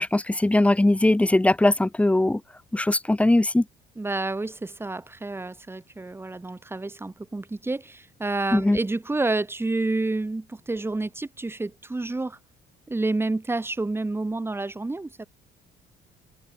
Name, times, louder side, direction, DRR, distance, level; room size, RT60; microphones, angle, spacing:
voice 1, 0.0-2.4 2.7-3.6 8.5-8.8, left 1 dB, 10° left, 1.3 m, -20 dB
voice 2, 4.0-12.4 12.9-15.2, right 2 dB, 15° right, 4.7 m, -29 dB
cardioid pair, 110°, 17 cm